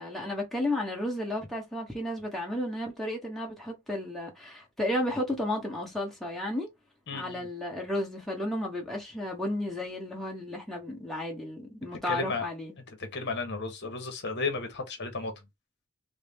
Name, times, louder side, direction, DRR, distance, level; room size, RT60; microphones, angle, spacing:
voice 1, 0.0-6.7 7.1-12.8, left 1 dB, ahead, 1.1 m, -33 dB
voice 2, 7.1-7.5 12.1-12.5 12.9-15.3, left 4 dB, 50° left, 1.0 m, -33 dB
4.0 x 2.0 x 3.5 m
head